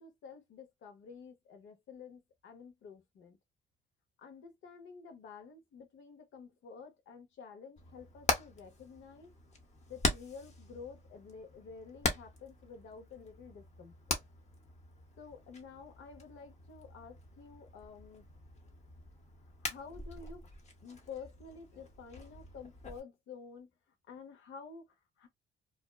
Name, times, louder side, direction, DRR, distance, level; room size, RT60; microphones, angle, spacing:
voice 1, 0.0-3.4 4.2-9.3 9.9-14.2 15.2-18.3 19.6-20.4 20.8-23.7 24.1-25.3, left 5 dB, 75° left, 0.8 m, -50 dB
Hammer, 7.8-23.0, left 3 dB, 35° left, 0.8 m, -41 dB
2.5 x 2.1 x 2.2 m
cardioid pair, 90°, 20 cm